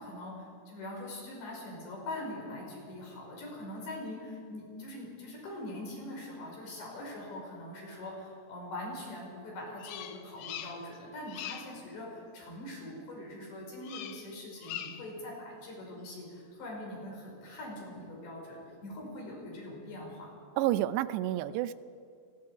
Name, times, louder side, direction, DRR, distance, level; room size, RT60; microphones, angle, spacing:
voice 1, 0.0-20.4, left 1 dB, 90° left, -1 dB, 7.4 m, -43 dB
Bird vocalization bird call bird song, 9.8-11.0 11.3-11.8 13.8-14.3 14.6-15.1, left 10 dB, 75° left, 2.4 m, -42 dB
voice 2, 20.6-21.7, right 14 dB, 85° right, 14 dB, 2.8 m, -29 dB
28.0 x 20.0 x 4.9 m, 2.3 s
omnidirectional pair, 4.9 m